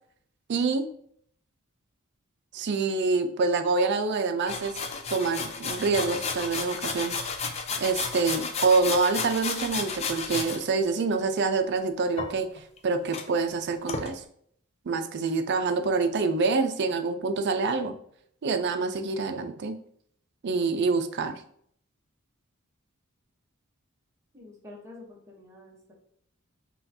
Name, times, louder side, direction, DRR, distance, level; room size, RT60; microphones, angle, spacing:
voice 1, 0.5-0.9 2.5-4.7 5.1-7.1 7.8-12.5 12.8-14.2 14.9-17.9 18.4-19.7 20.4-21.4, right 4 dB, 55° right, 8 dB, 0.4 m, -26 dB
sound 1, 4.5-10.6 12.2-12.8 13.1-13.2 13.9-14.1, left 5 dB, 30° left, 0.4 m, -32 dB
voice 2, 24.3-25.9, left 2 dB, 15° right, -3 dB, 0.9 m, -48 dB
5.5 x 2.3 x 2.7 m, 0.65 s
head